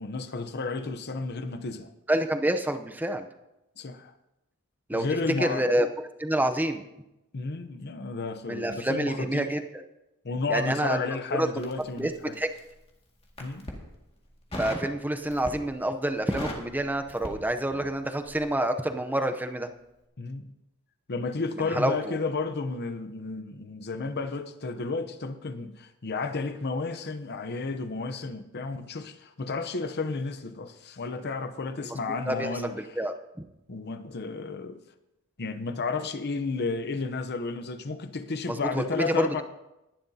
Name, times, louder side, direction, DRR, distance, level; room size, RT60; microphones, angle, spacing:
voice 1, 0.0-1.9 3.8-4.1 4.9-5.7 7.3-9.5 10.2-12.4 13.4-13.7 20.2-20.5 21.1-32.8 33.7-34.8 35.4-39.4, left 3 dB, 50° left, 0.8 m, -32 dB
voice 2, 2.1-3.3 4.9-5.1 5.4-5.9 6.2-6.8 8.5-9.8 10.5-11.0 11.3-11.5 12.0-12.1 12.4-12.5 14.6-19.7 21.6-22.2 31.8-33.1 38.5-39.4, right 1 dB, 10° right, 0.7 m, -28 dB
Crackle, 11.6-12.7 13.2-13.8 14.5-14.9 15.3-15.8 16.1-18.0 18.2-18.5, left 1 dB, 25° left, 2.0 m, -38 dB
19.0 x 11.0 x 2.8 m
head